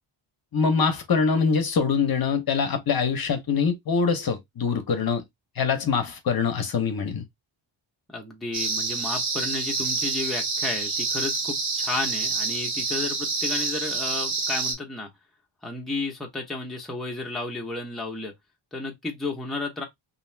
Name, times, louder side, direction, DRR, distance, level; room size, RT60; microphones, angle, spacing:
voice 1, 0.5-5.2 5.6-7.2, left 5 dB, 45° left, 0.7 m, -24 dB
voice 2, 8.1-15.1 15.6-18.3 18.7-19.8, left 3 dB, ahead, 0.6 m, -32 dB
sound 1, 8.5-14.7, right 3 dB, 75° right, 1.1 m, -28 dB
2.6 x 2.3 x 3.1 m
wide cardioid pair, 140°, 49 cm